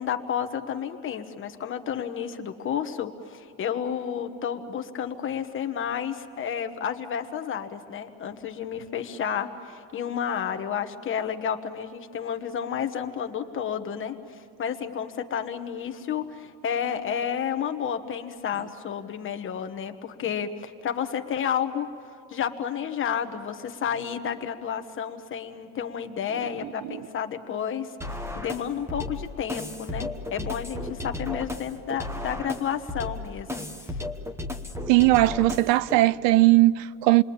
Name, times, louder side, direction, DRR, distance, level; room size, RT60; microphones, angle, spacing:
voice 1, 0.0-21.9 22.3-34.0, left 8 dB, 30° left, 1.2 m, -31 dB
sound 1, 28.0-36.0, left 2 dB, 5° right, 1.1 m, -34 dB
voice 2, 34.9-37.2, right 18 dB, 80° right, 0.7 m, -19 dB
28.5 x 22.0 x 8.7 m
cardioid pair, 170°, 42 cm